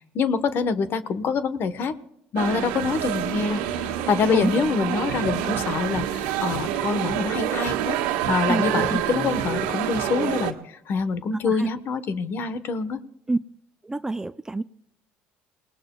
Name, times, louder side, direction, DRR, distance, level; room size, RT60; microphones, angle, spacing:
voice 1, 0.0-1.9 2.3-8.0 8.3-13.0, left 5 dB, 55° left, 12 dB, 1.2 m, -26 dB
sound 1, 2.4-10.5, right 10 dB, 85° right, 1.4 m, -27 dB
voice 2, 4.3-4.6 8.5-9.0 11.4-11.7 13.3-13.4 13.8-14.6, right 2 dB, 15° right, 13 dB, 0.5 m, -26 dB
29.5 x 19.0 x 2.3 m, 0.80 s
supercardioid pair, 80°, 5 cm